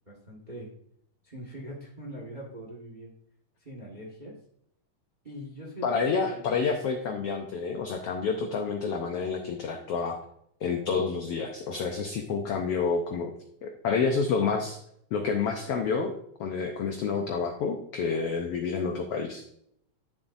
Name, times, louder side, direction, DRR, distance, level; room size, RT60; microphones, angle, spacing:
voice 1, 0.1-0.7 1.2-3.1 3.6-4.3 5.2-6.4, equal, 25° right, -1 dB, 1.0 m, -42 dB
voice 2, 5.8-10.2 10.6-13.3 13.6-14.8 15.1-16.1 16.4-19.4, left 5 dB, 85° left, 4 dB, 1.3 m, -29 dB
11.5 x 7.1 x 2.6 m, 0.71 s
omnidirectional pair, 3.8 m